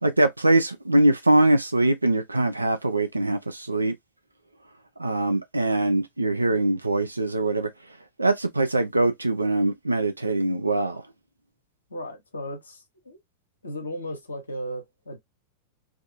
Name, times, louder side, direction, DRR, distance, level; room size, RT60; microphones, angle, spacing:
voice 1, 0.0-3.9 5.0-7.7 8.2-11.0, right 2 dB, 85° right, 0.3 m, -22 dB
voice 2, 11.9-13.2 13.6-15.2, equal, 75° left, 0.5 m, -35 dB
2.4 x 2.3 x 2.5 m
figure-of-eight pair, 90°, 0 cm